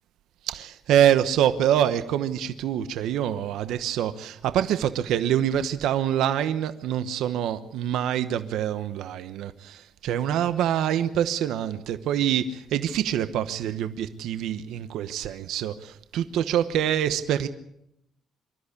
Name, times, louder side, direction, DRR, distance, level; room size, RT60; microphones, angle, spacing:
voice 1, 0.4-17.5, right 10 dB, 85° right, 1.0 m, -25 dB
25.0 x 13.5 x 8.4 m
cardioid pair, 170°, 0 cm